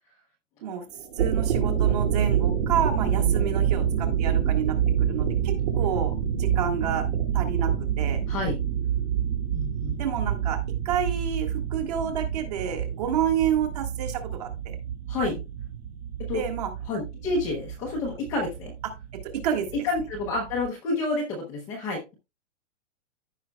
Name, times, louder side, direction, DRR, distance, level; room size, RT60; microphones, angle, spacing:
Nuclear distant, 1.0-20.7, right 9 dB, 55° right, 2.6 m, -27 dB
voice 1, 1.2-6.1 6.4-7.0 7.3-7.7 8.0-8.2 10.0-10.6 10.9-14.8 16.3-16.7 19.4-19.7, right 8 dB, 35° right, 4 dB, 1.8 m, -29 dB
voice 2, 8.3-8.6 9.5-10.0 15.1-15.4 16.3-16.4 16.9-18.7 19.7-22.1, left 2 dB, 10° left, -3 dB, 0.7 m, -29 dB
15.0 x 5.7 x 2.3 m, 0.26 s
hypercardioid pair, 175°, 36 cm